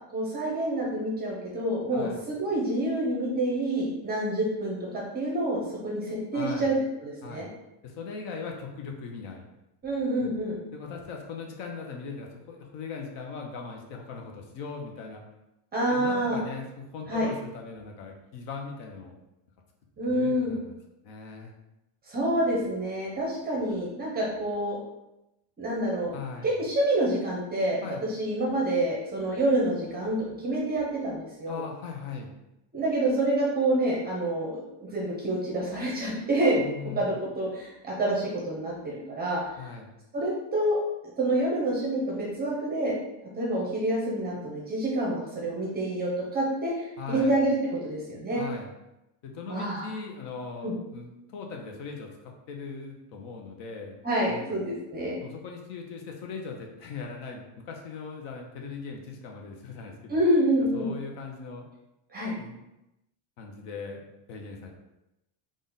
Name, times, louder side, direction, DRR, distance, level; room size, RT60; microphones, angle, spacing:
voice 1, 0.1-6.7 7.0-7.5 9.8-10.6 15.7-16.4 17.1-17.3 20.0-20.5 22.1-24.8 25.6-26.2 26.4-27.8 28.1-31.6 32.7-36.6 37.0-39.4 40.1-40.8 41.2-42.9 43.3-48.4 49.5-49.9 50.6-50.7 54.0-55.2 60.1-60.9 62.1-62.3, right 1 dB, 20° right, -3 dB, 0.6 m, -27 dB
voice 2, 6.3-6.7 7.2-7.5 7.8-9.5 10.2-10.3 10.7-15.2 15.9-19.1 20.1-20.8 21.0-21.5 26.1-26.6 27.8-28.0 31.5-32.3 36.6-37.1 39.6-39.9 47.0-47.4 48.3-48.7 49.2-52.1 52.5-53.9 54.3-54.6 55.2-60.2 60.7-61.7 62.4-62.6 63.4-64.7, left 5 dB, 60° left, 2 dB, 0.8 m, -39 dB
3.7 x 2.5 x 3.9 m, 0.92 s
cardioid pair, 175°, 48 cm